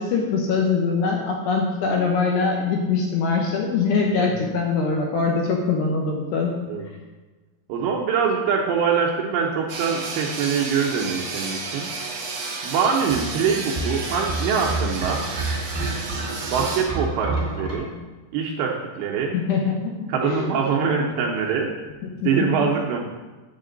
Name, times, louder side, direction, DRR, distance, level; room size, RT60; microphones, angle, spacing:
voice 1, 0.0-6.5 19.3-20.0 20.2-20.5 20.8-20.9 22.0-22.7, left 4 dB, 75° left, 0 dB, 2.7 m, -23 dB
voice 2, 7.7-11.9 12.6-15.3 16.5-18.0 18.3-19.4 20.1-21.8 22.2-23.0, right 6 dB, 80° right, 0 dB, 2.6 m, -24 dB
sound 1, 9.7-16.8, right 3 dB, 60° right, 1.7 m, -32 dB
sound 2, 13.1-17.7, right 2 dB, 25° right, 1.2 m, -29 dB
8.4 x 8.3 x 3.8 m, 1.2 s
omnidirectional pair, 5.6 m